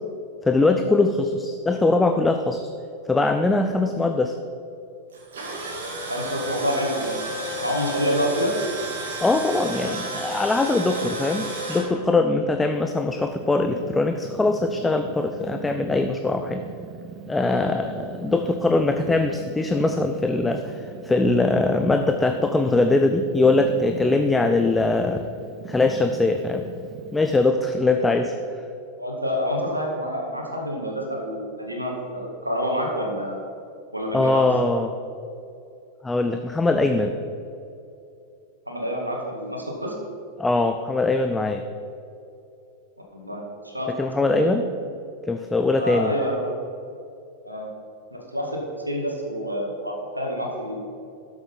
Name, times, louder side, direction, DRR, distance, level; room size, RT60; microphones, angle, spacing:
voice 1, 0.5-2.6 3.1-4.4 9.2-16.6 17.3-25.2 25.7-26.6 27.1-28.3 34.1-34.9 36.0-37.2 40.4-41.7 44.0-44.6 45.3-46.1, left 2 dB, 10° left, 7 dB, 0.5 m, -22 dB
Tools, 5.1-11.8, right 1 dB, 60° right, 2.8 m, -32 dB
voice 2, 6.1-7.3 7.6-8.5 28.0-28.1 29.0-33.4 33.9-34.5 38.7-39.9 43.1-44.5 45.8-46.5 47.4-47.7 48.1-50.8, equal, 85° right, 0 dB, 2.0 m, -28 dB
Purr, 12.7-27.5, right 6 dB, 25° right, 0.9 m, -40 dB
12.0 x 7.4 x 5.7 m, 2.6 s
figure-of-eight pair, 90°, 0 cm